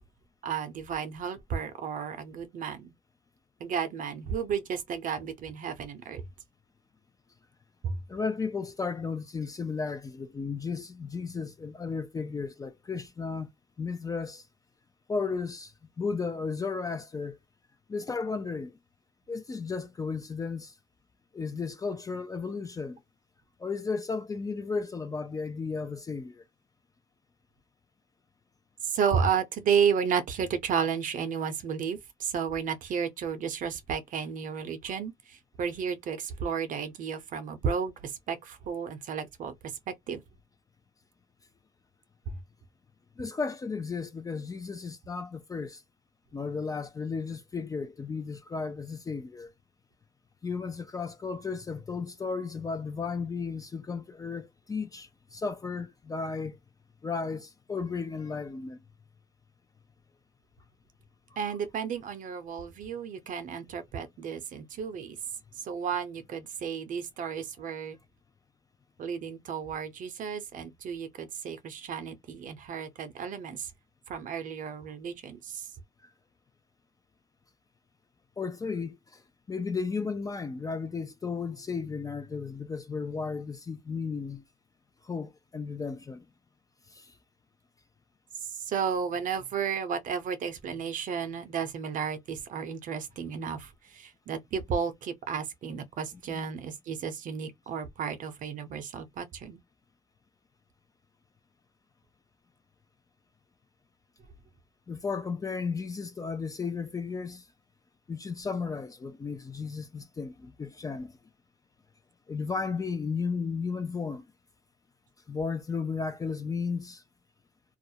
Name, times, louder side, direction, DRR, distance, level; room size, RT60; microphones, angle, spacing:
voice 1, 0.4-2.9 3.6-6.2 7.8-8.0 28.8-40.2 42.3-42.4 61.4-65.2 65.6-68.0 69.0-73.7 74.1-75.7 88.5-99.6, right 7 dB, 50° right, 0.6 m, -32 dB
voice 2, 8.1-13.5 13.8-14.4 15.1-15.7 16.0-17.4 17.9-18.7 19.3-20.7 21.3-23.0 23.6-26.4 43.2-45.8 46.3-49.5 50.4-56.6 57.0-58.8 78.4-79.2 79.5-84.4 85.0-86.2 86.9-87.1 96.3-96.4 104.9-107.5 108.1-111.1 112.3-114.3 115.3-117.0, left 5 dB, 20° left, 0.4 m, -34 dB
2.4 x 2.0 x 2.7 m
cardioid pair, 110°, 17 cm